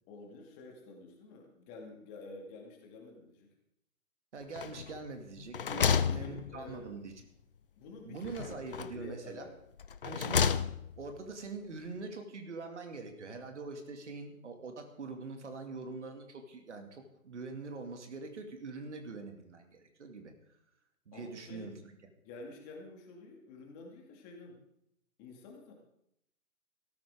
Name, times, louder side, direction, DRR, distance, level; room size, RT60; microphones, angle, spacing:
voice 1, 0.1-3.5 5.7-6.9 7.7-8.4 8.9-9.5 21.1-21.7 22.2-24.6 25.2-25.7, left 3 dB, 20° left, 1 dB, 2.2 m, -49 dB
voice 2, 4.3-7.3 8.0-9.5 10.0-10.6 11.0-20.3 21.1-21.7, right 3 dB, 55° right, 5 dB, 2.5 m, -43 dB
sound 1, 4.6-5.1 5.4-7.0 8.2-9.1 9.8-11.0, left 7 dB, 40° left, 0.6 m, -32 dB
17.5 x 13.5 x 3.7 m, 0.77 s
figure-of-eight pair, 135°, 42 cm